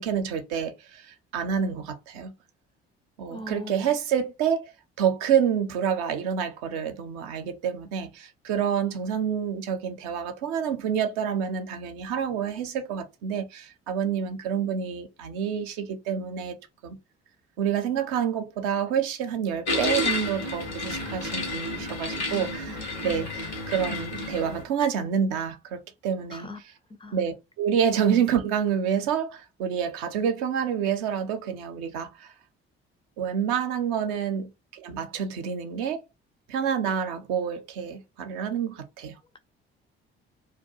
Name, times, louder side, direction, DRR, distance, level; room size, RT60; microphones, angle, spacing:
voice 1, 0.0-2.3 3.2-4.7 5.0-16.6 16.8-17.0 17.6-26.5 27.1-32.3 33.2-36.0 36.5-39.2, right 8 dB, 65° right, 0.6 m, -28 dB
voice 2, 3.2-3.7 22.3-23.3 26.3-26.6 27.0-27.2, left 1 dB, 15° left, 0.4 m, -41 dB
sound 1, 19.7-24.6, left 2 dB, 85° left, 0.8 m, -31 dB
2.3 x 2.2 x 2.6 m
figure-of-eight pair, 45°, 31 cm